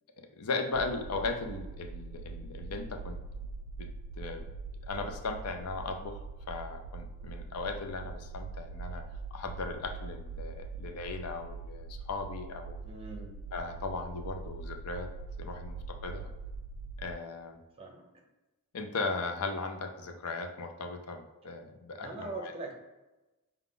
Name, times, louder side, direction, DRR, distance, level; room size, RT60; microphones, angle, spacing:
voice 1, 0.4-3.2 3.8-3.9 4.2-4.5 4.9-6.2 6.5-9.0 9.3-12.8 13.5-15.1 15.4-16.3 17.0-17.6 18.7-22.5, left 3 dB, 90° left, 5 dB, 0.5 m, -37 dB
sound 1, 0.7-17.2, right 4 dB, 90° right, 0.3 m, -43 dB
voice 2, 12.8-13.3 17.8-18.0 22.0-22.7, right 2 dB, 25° right, 1 dB, 0.6 m, -41 dB
4.8 x 2.3 x 3.7 m, 1.1 s
head